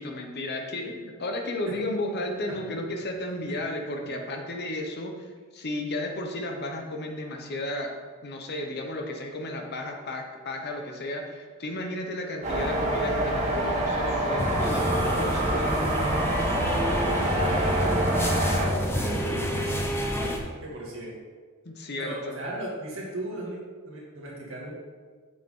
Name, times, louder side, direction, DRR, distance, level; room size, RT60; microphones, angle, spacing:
voice 1, 0.0-7.9 8.2-15.9 21.6-22.4, left 1 dB, 50° left, 3 dB, 1.0 m, -33 dB
sound 1, 12.4-18.7, right 1 dB, 30° right, 1.8 m, -26 dB
sound 2, 14.4-20.4, equal, 10° left, 0.7 m, -29 dB
voice 2, 17.3-19.8 20.1-21.2 22.0-23.6 23.8-24.7, right 1 dB, 60° right, -4 dB, 2.1 m, -37 dB
7.5 x 6.4 x 3.8 m, 1.5 s
head